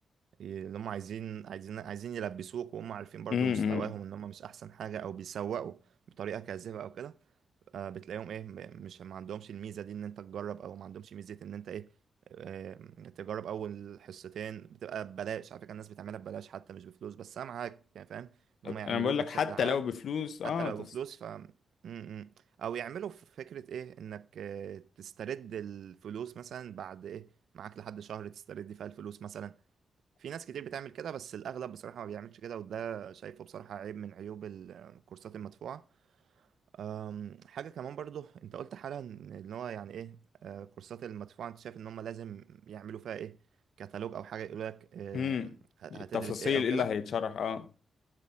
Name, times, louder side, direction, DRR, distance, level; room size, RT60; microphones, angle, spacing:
voice 1, 0.4-5.8 6.2-7.2 7.7-11.9 12.3-18.3 18.6-19.8 20.4-21.5 21.8-22.3 22.6-29.6 30.2-35.8 36.7-43.4 43.8-45.6 45.8-46.9, right 9 dB, 85° right, 0.4 m, -41 dB
voice 2, 3.3-3.9 18.6-20.8 45.1-45.5 45.9-47.7, left 7 dB, 65° left, 0.6 m, -31 dB
11.0 x 7.5 x 4.3 m
wide cardioid pair, 170°, 0 cm